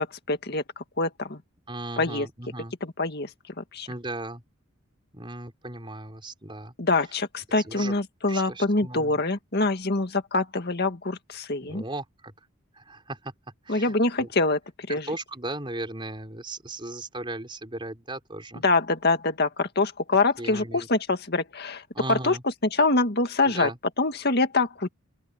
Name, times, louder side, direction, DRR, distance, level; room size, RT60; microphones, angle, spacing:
voice 1, 0.0-1.4 2.0-2.3 2.8-3.3 3.6-3.9 6.8-11.8 13.7-14.6 14.9-15.1 18.6-23.7 24.0-24.9, left 3 dB, 50° left, 2.1 m, -25 dB
voice 2, 1.7-2.7 3.9-4.4 5.1-6.7 7.6-7.9 8.3-9.2 11.7-12.3 12.7-13.3 13.6-14.3 14.9-18.6 20.4-20.9 21.9-22.4 23.4-23.8, right 2 dB, 25° right, 4.5 m, -36 dB
open air
head